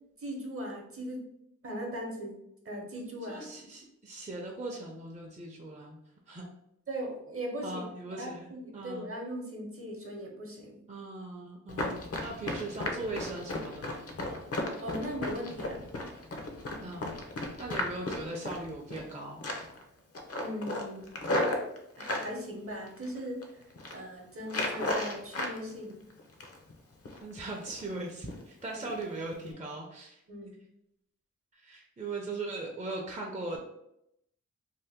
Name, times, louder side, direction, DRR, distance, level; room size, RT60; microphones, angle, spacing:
voice 1, 0.2-1.2 1.6-2.4 2.6-3.5 6.9-7.8 8.1-10.8 14.8-15.9 20.4-21.1 22.0-26.0 30.3-30.5, equal, 45° right, 0 dB, 0.9 m, -39 dB
voice 2, 3.3-6.0 6.3-6.4 7.6-9.1 10.9-14.1 16.8-17.1 17.6-19.4 27.2-30.2 31.6-33.6, right 2 dB, 25° right, -1 dB, 0.6 m, -39 dB
Run, 11.7-19.1 19.4-19.8 20.1-22.3 22.9-23.4 23.7-24.0 24.5-25.6 25.9-26.7 27.1-27.2 27.6-28.0 28.3-28.4 28.9-29.0 29.4-29.5, left 1 dB, 50° left, 0.7 m, -34 dB
2.8 x 2.1 x 3.4 m, 0.78 s
cardioid pair, 50°, 30 cm